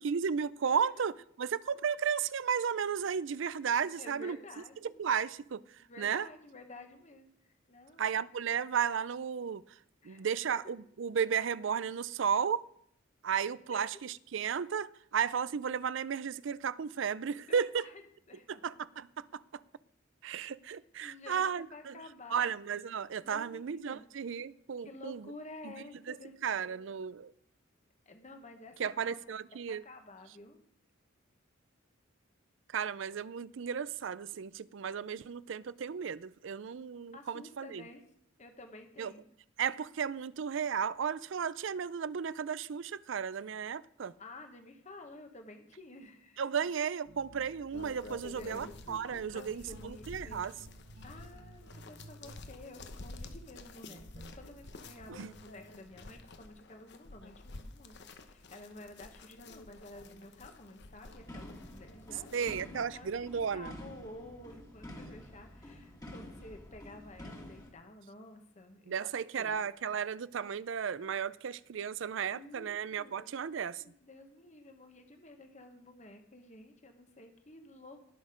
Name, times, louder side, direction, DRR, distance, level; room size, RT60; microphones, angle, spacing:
voice 1, 0.0-4.4 5.0-5.6 6.0-6.3 8.0-9.6 10.0-12.7 13.2-17.8 18.5-19.6 20.2-21.9 22.3-25.3 26.1-26.2 26.4-27.3 28.8-29.8 32.7-37.8 39.0-39.1 39.6-44.1 46.4-50.5 55.1-55.3 62.3-63.7 68.9-73.8, right 7 dB, 65° right, 0.4 m, -34 dB
voice 2, 3.9-5.0 5.8-7.3 7.7-8.2 10.0-10.2 13.7-13.8 17.5-18.6 20.7-22.4 23.2-24.0 24.8-26.9 28.0-29.2 29.7-30.6 37.1-38.0 38.4-39.2 44.2-46.4 48.2-48.7 49.3-50.5 51.0-63.1 63.5-68.9 69.4-69.6 72.2-78.1, left 2 dB, 35° left, 1.3 m, -51 dB
sound 1, 47.1-56.6, right 2 dB, 85° right, 1.0 m, -56 dB
sound 2, 47.7-62.6, left 2 dB, 55° left, 1.0 m, -50 dB
sound 3, 61.1-67.7, left 1 dB, 20° left, 1.9 m, -49 dB
18.5 x 6.5 x 5.1 m
head